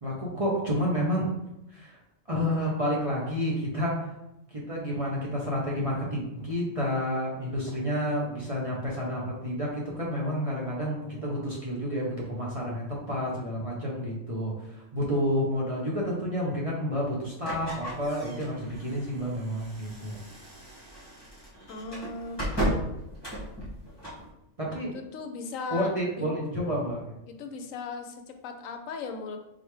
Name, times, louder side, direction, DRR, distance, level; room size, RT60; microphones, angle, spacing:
voice 1, 0.0-1.3 1.7-2.0 2.3-4.1 4.5-20.2 24.6-24.9 25.7-27.0, equal, 35° right, -5 dB, 0.7 m, -30 dB
sound 1, 17.4-24.3, equal, 20° left, 1.6 m, -35 dB
voice 2, 21.7-22.5 24.9-25.9 26.2-26.3 27.3-29.4, left 4 dB, 75° left, 5 dB, 0.9 m, -37 dB
3.8 x 3.3 x 3.1 m, 0.90 s
omnidirectional pair, 1.4 m